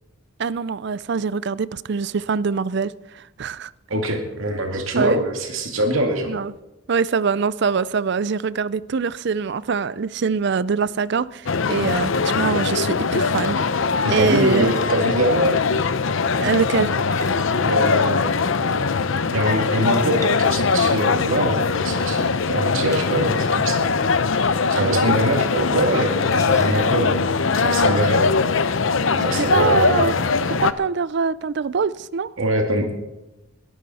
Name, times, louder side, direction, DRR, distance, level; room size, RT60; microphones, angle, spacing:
voice 1, 0.4-3.7 4.7-5.2 6.3-6.5 6.9-13.6 14.1-14.7 16.4-16.9 24.7-25.0 29.4-30.1 30.5-32.3, right 5 dB, 55° right, 0.4 m, -24 dB
voice 2, 3.9-6.3 14.0-15.6 17.6-18.7 19.3-23.9 24.8-28.4 29.1-30.1 32.4-32.9, right 1 dB, 80° right, 2.2 m, -23 dB
sound 1, 11.5-30.7, left 4 dB, 70° left, 0.7 m, -21 dB
sound 2, 14.2-15.0 16.9-18.3 19.7-21.4 22.9-23.4 23.6-23.7 24.1-24.2 25.2-25.3 26.3-27.1, left 2 dB, 15° left, 1.4 m, -39 dB
21.5 x 12.0 x 4.2 m
head